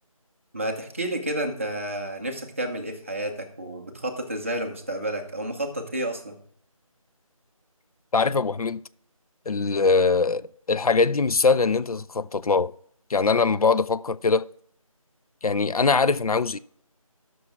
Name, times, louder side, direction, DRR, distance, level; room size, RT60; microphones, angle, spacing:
voice 1, 0.5-6.4, right 1 dB, 25° right, 0.7 m, -30 dB
voice 2, 8.1-8.8 9.5-12.7 13.1-14.4 15.4-16.6, left 4 dB, 80° left, 0.4 m, -22 dB
11.5 x 6.2 x 3.5 m
figure-of-eight pair, 165°, 18 cm